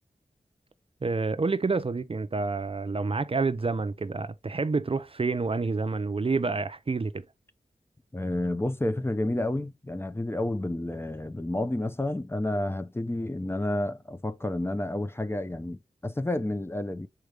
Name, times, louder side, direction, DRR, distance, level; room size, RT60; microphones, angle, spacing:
voice 1, 1.0-7.2, right 4 dB, 40° right, 0.6 m, -28 dB
voice 2, 8.1-17.1, left 1 dB, 15° left, 0.6 m, -30 dB
6.4 x 4.5 x 3.4 m
wide cardioid pair, 75°, 14 cm